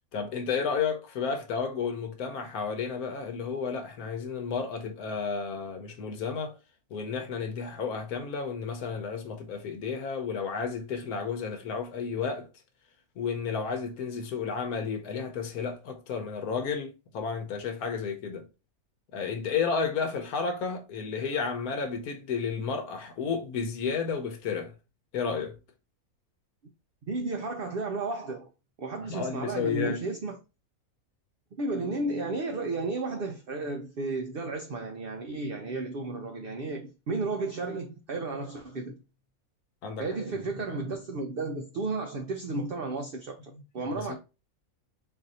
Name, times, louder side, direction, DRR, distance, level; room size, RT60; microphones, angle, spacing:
voice 1, 0.1-6.6 6.9-12.5 13.2-18.5 19.1-24.7 25.1-25.6 29.1-30.0 39.8-40.0 43.5-44.2, left 5 dB, 85° left, 1.2 m, -32 dB
voice 2, 27.1-28.5 28.8-30.4 31.6-39.0 40.0-44.2, right 3 dB, 55° right, 0.6 m, -33 dB
4.0 x 2.6 x 4.0 m
omnidirectional pair, 1.5 m